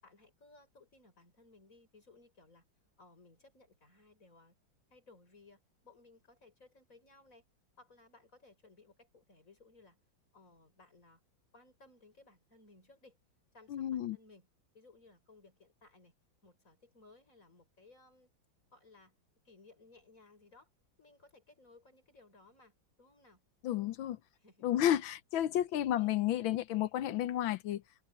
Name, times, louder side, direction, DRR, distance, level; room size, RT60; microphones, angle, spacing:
voice 1, 0.0-2.6 3.0-4.5 4.9-7.4 7.8-10.0 10.3-11.2 11.5-13.2 13.5-14.5 14.7-16.1 16.4-18.3 18.7-19.1 19.4-20.7 21.0-23.4 24.3-24.7 26.0-26.1, left 3 dB, 40° left, 6.4 m, -61 dB
voice 2, 13.7-14.2 23.6-24.2 24.6-27.8, left 12 dB, 90° left, 1.6 m, -31 dB
omnidirectional pair, 2.1 m